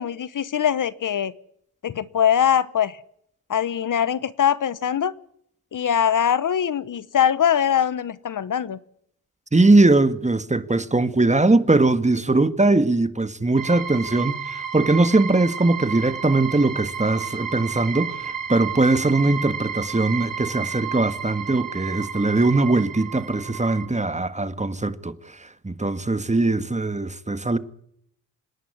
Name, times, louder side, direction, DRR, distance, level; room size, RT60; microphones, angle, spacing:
voice 1, 0.0-1.3 1.8-3.0 3.5-5.1 5.7-8.8, left 9 dB, 55° left, 1.0 m, -22 dB
voice 2, 9.5-25.1 25.6-27.6, right 2 dB, 20° right, 1.7 m, -20 dB
sound 1, 13.6-23.9, right 7 dB, 60° right, 3.2 m, -32 dB
27.0 x 11.0 x 9.9 m
supercardioid pair, 50°, 37 cm